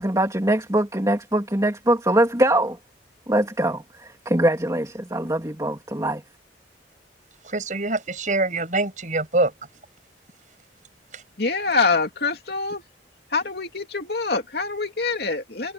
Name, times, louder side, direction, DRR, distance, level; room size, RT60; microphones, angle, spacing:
voice 1, 0.0-2.8 3.3-6.2, right 1 dB, 20° right, 3.3 m, -22 dB
voice 2, 7.4-9.5 11.1-11.2, right 2 dB, 45° right, 7.5 m, -24 dB
voice 3, 11.4-12.8 13.3-15.7, left 4 dB, 60° left, 2.9 m, -25 dB
head